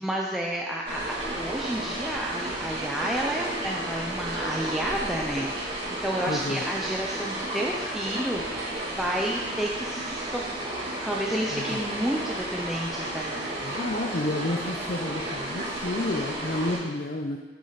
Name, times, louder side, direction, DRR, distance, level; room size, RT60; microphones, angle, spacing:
voice 1, 0.0-8.4 8.9-10.5 10.8-13.5, right 1 dB, ahead, -3 dB, 0.6 m, -31 dB
sound 1, 0.8-16.8, right 1 dB, 30° right, 3.0 m, -33 dB
voice 2, 6.3-6.6 11.5-11.6 13.6-17.4, left 2 dB, 45° left, 2 dB, 0.6 m, -30 dB
9.4 x 8.5 x 4.0 m, 1.2 s
head